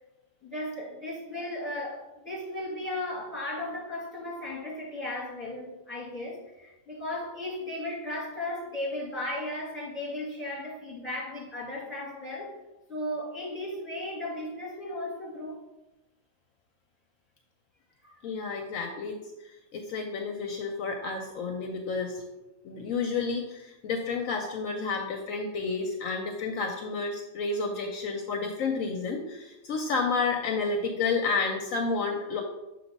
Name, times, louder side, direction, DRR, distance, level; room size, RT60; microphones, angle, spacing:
voice 1, 0.4-12.5 12.9-15.6 18.0-18.3, left 1 dB, 10° left, -6 dB, 2.2 m, -36 dB
voice 2, 18.2-19.2 19.7-22.2 22.6-32.4, left 4 dB, 70° left, 3 dB, 1.0 m, -30 dB
7.0 x 3.3 x 5.2 m, 0.99 s
omnidirectional pair, 1.5 m